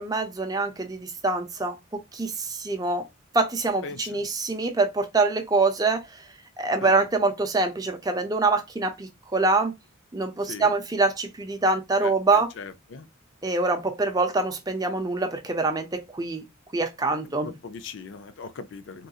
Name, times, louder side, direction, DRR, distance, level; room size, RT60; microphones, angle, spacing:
voice 1, 0.0-3.0 3.3-6.0 6.6-9.7 10.1-12.5 13.4-16.4 16.7-17.5, right 3 dB, 20° right, 0.5 m, -25 dB
voice 2, 3.8-4.2 6.8-7.0 10.5-10.7 12.0-12.1 12.6-13.1 17.4-19.1, left 4 dB, 65° left, 0.4 m, -39 dB
3.7 x 2.6 x 2.3 m
head